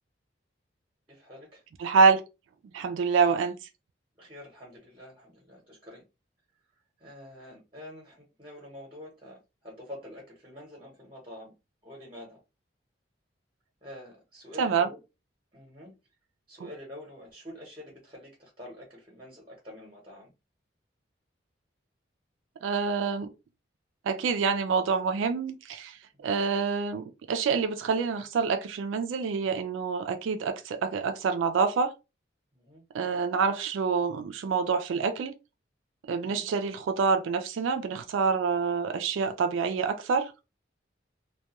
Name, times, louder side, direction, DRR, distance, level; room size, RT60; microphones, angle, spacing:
voice 1, 1.1-1.6 4.2-6.1 7.0-11.5 11.8-12.4 13.8-15.0 15.5-16.0 16.5-20.3 32.5-32.8 36.2-36.5, left 1 dB, 25° right, 0.8 m, -47 dB
voice 2, 1.8-2.2 2.7-3.6 14.6-14.9 22.6-23.3 24.1-31.9 32.9-35.3 36.1-40.3, right 5 dB, 80° right, 0.3 m, -26 dB
2.2 x 2.2 x 2.8 m
head